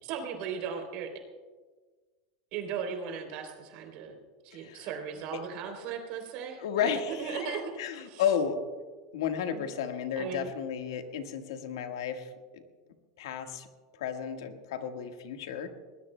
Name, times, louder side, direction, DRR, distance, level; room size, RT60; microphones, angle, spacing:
voice 1, 0.0-1.1 2.5-4.1 4.4-6.9 7.2-8.2 9.5-9.6 10.2-10.5, right 6 dB, 60° right, 4 dB, 3.2 m, -37 dB
voice 2, 4.5-4.9 5.3-5.4 6.6-8.6 9.1-12.6 13.2-13.7 14.0-15.7, left 8 dB, 80° left, 6 dB, 1.5 m, -33 dB
21.5 x 20.0 x 2.2 m, 1.4 s
supercardioid pair, 115°, 2 cm